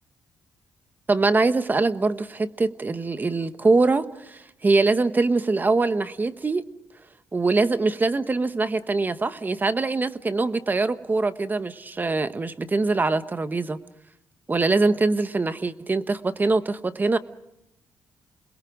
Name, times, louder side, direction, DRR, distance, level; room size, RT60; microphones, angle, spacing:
voice 1, 1.1-6.7 7.3-13.8 14.5-17.2, right 3 dB, 25° right, 12 dB, 1.1 m, -23 dB
29.5 x 21.5 x 5.2 m, 0.86 s
cardioid pair, 90°, 7 cm